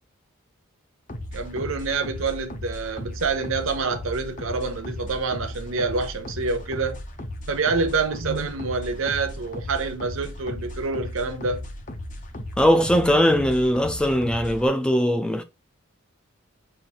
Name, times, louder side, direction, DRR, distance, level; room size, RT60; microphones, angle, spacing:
sound 1, 1.1-14.7, left 1 dB, 35° left, 0.7 m, -36 dB
voice 1, 1.3-7.0 7.5-11.6, right 4 dB, 65° right, 0.8 m, -27 dB
voice 2, 12.6-15.4, equal, 5° left, 0.3 m, -20 dB
5.6 x 2.6 x 2.8 m
head